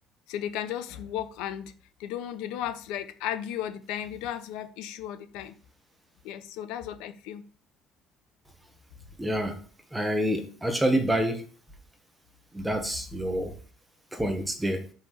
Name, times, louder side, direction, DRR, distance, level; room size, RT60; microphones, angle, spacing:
voice 1, 0.3-1.7 2.0-5.5 6.2-7.4, left 10 dB, 90° left, 0.9 m, -35 dB
voice 2, 9.2-9.6 9.9-11.4 12.5-13.5 14.1-14.9, right 1 dB, 5° right, 1.3 m, -27 dB
6.0 x 5.7 x 6.5 m
cardioid pair, 155°, 0 cm